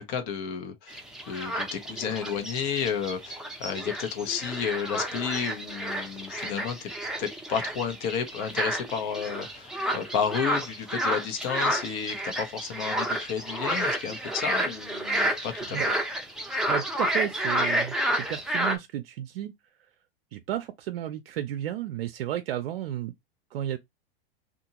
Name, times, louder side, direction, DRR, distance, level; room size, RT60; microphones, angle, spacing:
voice 1, 0.0-6.9 7.2-15.9, left 7 dB, 55° left, 0.9 m, -32 dB
sound 1, 0.9-18.7, right 1 dB, ahead, 0.6 m, -30 dB
voice 2, 16.7-19.5 20.3-23.1 23.5-23.8, right 12 dB, 80° right, 0.5 m, -33 dB
2.8 x 2.4 x 2.8 m
hypercardioid pair, 105°, 30 cm